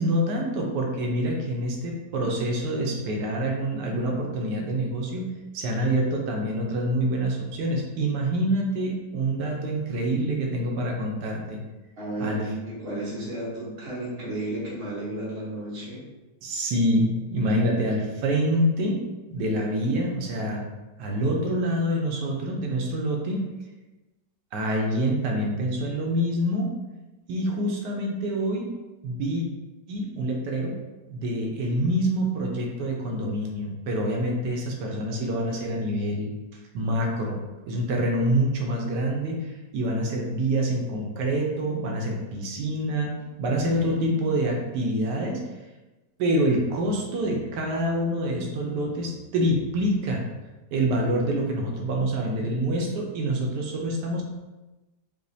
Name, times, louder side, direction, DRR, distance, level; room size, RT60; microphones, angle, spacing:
voice 1, 0.0-11.6 12.2-12.4 16.4-19.0 19.3-20.6 21.0-23.4 24.5-26.7 27.3-28.6 29.0-29.4 29.9-30.7 31.1-36.3 36.7-37.4 37.7-45.4 46.2-50.2 50.7-54.2, right 1 dB, 90° right, 0 dB, 1.3 m, -26 dB
voice 2, 12.0-16.0 52.8-52.9, right 1 dB, 40° right, -7 dB, 1.2 m, -33 dB
5.0 x 2.0 x 2.6 m, 1.1 s
omnidirectional pair, 1.8 m